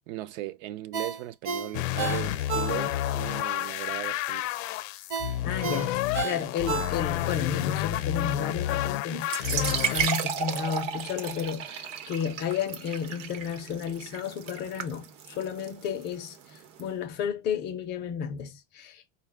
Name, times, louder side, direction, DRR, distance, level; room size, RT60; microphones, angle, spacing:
voice 1, 0.1-4.5, right 15 dB, 65° right, 0.6 m, -37 dB
Ringtone, 0.9-3.2 3.6-3.7 5.1-7.4 7.7-7.8, right 5 dB, 50° right, 1.0 m, -32 dB
sound 1, 1.7-10.1, left 14 dB, 90° left, 0.5 m, -30 dB
voice 2, 5.4-16.4 16.8-19.1, left 7 dB, 30° left, 0.4 m, -32 dB
sound 2, 9.2-16.8, right 6 dB, 85° right, 1.0 m, -34 dB
4.9 x 2.2 x 3.3 m
cardioid pair, 170°, 37 cm